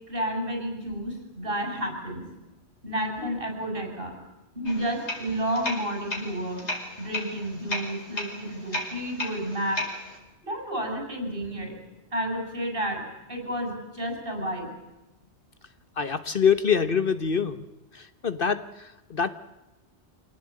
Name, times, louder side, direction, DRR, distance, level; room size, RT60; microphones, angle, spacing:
voice 1, 0.1-2.2 2.8-4.1 4.6-6.6 7.0-9.8 10.4-11.7 12.1-13.0 13.3-14.7, right 1 dB, 55° right, 2 dB, 7.6 m, -31 dB
sound 1, 4.6-10.2, left 1 dB, 85° left, 5.6 m, -35 dB
voice 2, 16.0-17.6 17.9-19.3, left 6 dB, 55° left, 12 dB, 1.3 m, -25 dB
27.0 x 18.0 x 8.8 m, 1.0 s
omnidirectional pair, 1.1 m